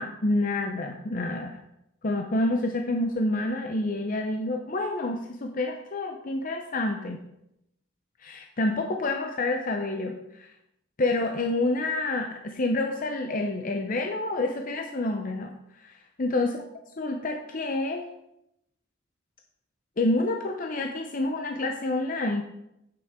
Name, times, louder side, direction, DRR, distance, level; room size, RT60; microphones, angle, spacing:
voice 1, 0.0-1.6 2.0-7.2 8.2-10.5 11.0-16.6 17.0-18.0 20.0-22.4, left 2 dB, 40° left, 3 dB, 0.7 m, -28 dB
8.9 x 8.2 x 3.7 m, 0.82 s
head